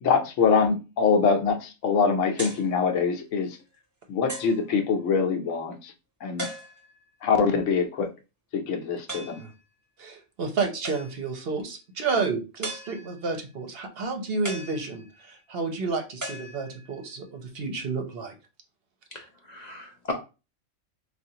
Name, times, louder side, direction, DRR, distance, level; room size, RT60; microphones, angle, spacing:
voice 1, 0.0-3.6 4.1-5.9 6.2-6.5 7.2-8.1 8.5-9.4, left 5 dB, 75° left, 1.0 m, -24 dB
sound 1, 2.4-2.7 3.4-3.5 4.3-4.7 6.4-7.0 9.1-9.5 10.8-11.4 12.6-13.3 14.4-15.3 16.2-17.0, right 1 dB, 15° right, 0.8 m, -38 dB
voice 2, 10.0-18.3, right 4 dB, 55° right, 0.8 m, -31 dB
voice 3, 19.1-20.1, left 2 dB, 55° left, 0.5 m, -36 dB
4.6 x 2.4 x 2.7 m
omnidirectional pair, 1.3 m